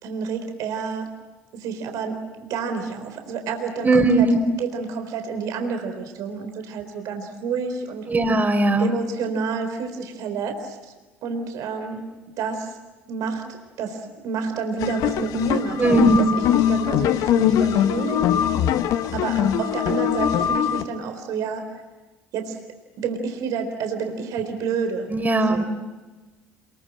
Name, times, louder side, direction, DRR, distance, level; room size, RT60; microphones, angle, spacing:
voice 1, 0.0-1.1 1.5-8.1 8.8-10.9 11.2-12.0 12.4-12.7 13.1-13.4 13.8-16.2 16.5-18.3 19.1-21.6 22.3-22.6 23.0-25.2 25.5-25.6, right 5 dB, 60° right, 5 dB, 4.1 m, -29 dB
voice 2, 3.8-4.4 8.1-8.9 15.8-16.2 25.1-25.6, right 1 dB, 25° right, 6 dB, 4.9 m, -18 dB
sound 1, 14.8-20.8, left 10 dB, 65° left, 1.4 m, -22 dB
28.5 x 22.5 x 9.0 m, 1.2 s
hypercardioid pair, 60°, 7 cm